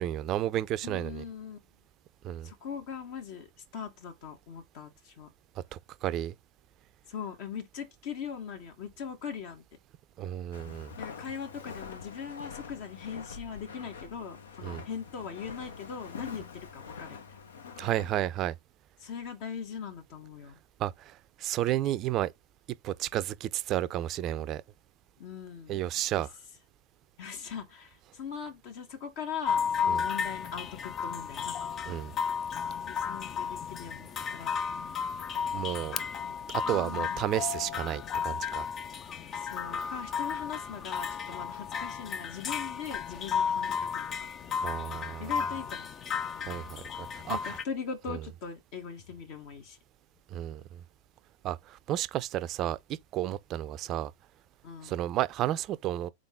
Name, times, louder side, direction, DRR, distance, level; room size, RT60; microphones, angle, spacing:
voice 1, 0.0-1.2 2.2-2.5 5.7-6.3 10.2-10.9 14.6-14.8 17.8-18.5 20.8-22.3 22.8-24.6 25.7-26.3 29.9-30.1 31.9-32.1 35.5-36.0 36.5-38.7 44.6-45.3 46.4-47.5 48.1-48.2 50.3-50.8 51.4-54.1 54.8-56.1, right 13 dB, 40° right, 0.4 m, -32 dB
voice 2, 0.8-1.6 2.4-3.5 3.7-5.3 7.1-9.6 11.0-17.2 19.0-20.6 25.2-25.8 26.1-26.2 27.2-31.6 32.9-34.6 36.5-37.3 39.3-44.1 45.2-45.9 47.3-49.8 54.6-54.9, left 7 dB, 55° left, 1.1 m, -40 dB
Walk footsteps, 10.5-18.2, left 5 dB, 80° left, 0.7 m, -45 dB
sound 1, 29.4-47.6, left 6 dB, 30° left, 0.5 m, -33 dB
3.8 x 3.8 x 3.5 m
hypercardioid pair, 100°, 0 cm